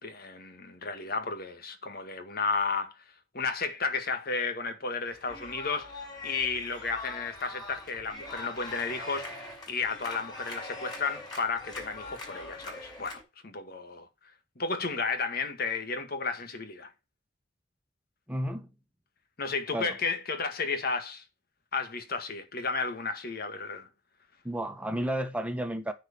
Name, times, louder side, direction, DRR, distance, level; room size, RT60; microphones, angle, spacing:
voice 1, 0.0-2.9 3.3-5.9 6.2-14.1 14.6-16.9 19.4-21.2 21.7-23.9, left 4 dB, 55° left, 1.8 m, -33 dB
sound 1, 5.1-13.2, left 2 dB, 25° left, 5.5 m, -42 dB
voice 2, 18.3-18.7 19.7-20.0 24.4-25.9, right 1 dB, 5° right, 1.4 m, -32 dB
9.3 x 4.7 x 7.0 m
head